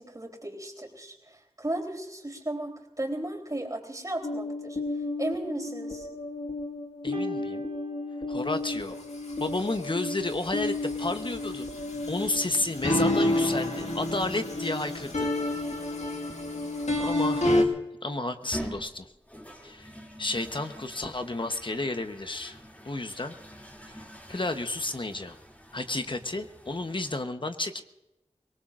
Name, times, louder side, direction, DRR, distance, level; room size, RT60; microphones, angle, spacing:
voice 1, 0.0-4.8 5.2-6.1, right 1 dB, 30° right, 2 dB, 3.7 m, -35 dB
sound 1, 4.2-17.6, left 1 dB, 80° left, 1.8 m, -30 dB
voice 2, 7.0-7.6 8.3-9.0 9.4-11.6 12.1-15.3 17.0-17.6 18.0-19.1 19.6-19.9 20.2-22.6 22.8-23.3 23.8-24.0 24.3-25.4 25.7-27.8, left 2 dB, 45° left, 8 dB, 1.0 m, -31 dB
sound 2, 7.1-9.6 10.6-10.8, right 2 dB, 70° right, 3.0 m, -44 dB
sound 3, 15.3-15.8 16.5-16.6 18.3-27.2, equal, 15° left, 2.7 m, -45 dB
24.5 x 19.0 x 2.5 m, 0.94 s
wide cardioid pair, 45°, 11 cm